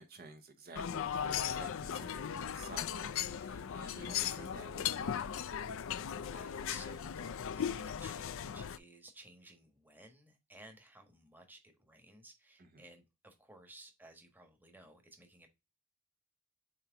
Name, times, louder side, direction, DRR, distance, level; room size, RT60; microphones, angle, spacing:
voice 1, 0.0-5.3 12.6-12.8, right 3 dB, 45° right, 0.7 m, -52 dB
sound 1, 0.7-8.8, left 8 dB, 60° left, 0.4 m, -38 dB
voice 2, 6.2-15.5, right 2 dB, 10° right, 1.2 m, -57 dB
7.5 x 3.0 x 4.5 m
head